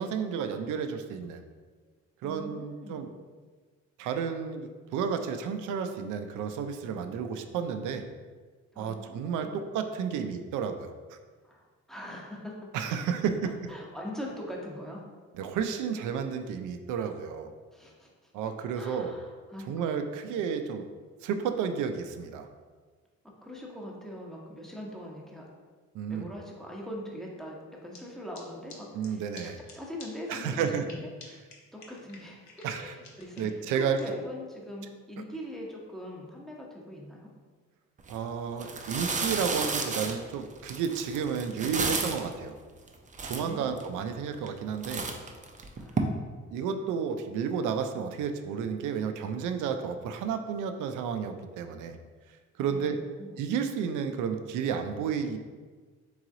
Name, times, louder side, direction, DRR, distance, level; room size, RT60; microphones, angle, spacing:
voice 1, 0.0-1.4 2.2-3.1 4.0-8.0 8.8-11.2 12.7-13.5 15.3-17.5 18.3-19.1 19.7-20.8 21.2-22.5 25.9-26.3 28.9-29.6 30.3-30.9 32.6-32.9 33.4-34.0 38.1-42.6 43.2-45.1 46.5-52.0 52.6-53.0 53.4-55.4, right 7 dB, 85° right, 7 dB, 0.5 m, -32 dB
voice 2, 2.2-3.0 8.7-9.6 10.1-10.3 11.4-12.7 13.7-15.1 17.7-18.3 18.7-19.9 23.4-25.5 26.1-31.4 31.7-37.3 43.4-44.1 45.8-46.3 52.7-53.5, equal, ahead, -3 dB, 0.9 m, -42 dB
sound 1, 27.9-28.0 28.3-28.4 28.7-28.8 29.0-29.1 29.3-29.4 29.7-29.8 30.0-30.1 30.3-30.9 31.2-31.3 31.5-31.6 31.8-34.0, left 5 dB, 65° left, 1.0 m, -48 dB
sound 2, 38.0-38.1 38.6-42.3 42.9-43.0 43.1-43.8 44.3-44.6 44.8-46.0, right 4 dB, 25° right, 0.5 m, -32 dB
3.8 x 3.1 x 3.7 m, 1.4 s
cardioid pair, 90°, 30 cm